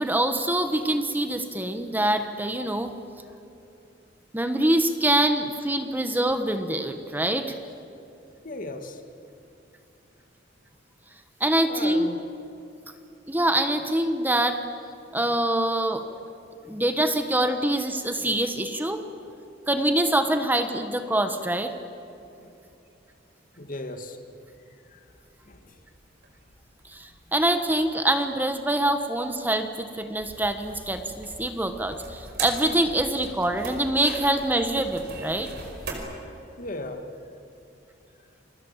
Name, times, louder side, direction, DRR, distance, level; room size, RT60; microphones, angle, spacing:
voice 1, 0.0-2.9 4.3-7.5 11.4-12.1 13.3-14.6 15.1-16.0 16.7-19.0 19.7-21.7 26.8-35.5, right 1 dB, 10° right, 7 dB, 1.2 m, -25 dB
voice 2, 8.4-9.0 11.7-12.3 22.4-22.5 23.6-24.2 24.9-25.0 25.5-25.7 36.6-37.1, left 2 dB, 45° left, 6 dB, 2.1 m, -36 dB
sound 1, 25.2-35.9, right 4 dB, 60° right, 5.0 m, -41 dB
29.0 x 22.5 x 7.4 m, 2.8 s
head